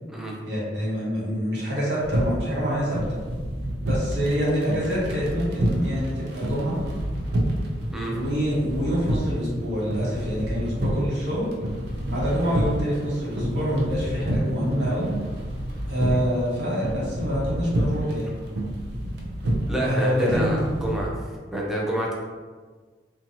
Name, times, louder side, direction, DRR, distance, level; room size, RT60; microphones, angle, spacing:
voice 1, 0.5-3.0 3.9-6.8 8.0-11.5 12.1-15.1 15.9-18.3 19.8-20.6, equal, 85° right, -6 dB, 1.0 m, -26 dB
sound 1, 2.0-21.1, right 1 dB, 65° right, 0.4 m, -29 dB
voice 2, 19.7-21.1 21.5-22.1, right 1 dB, 5° right, -3 dB, 0.4 m, -27 dB
2.6 x 2.2 x 2.7 m, 1.4 s
head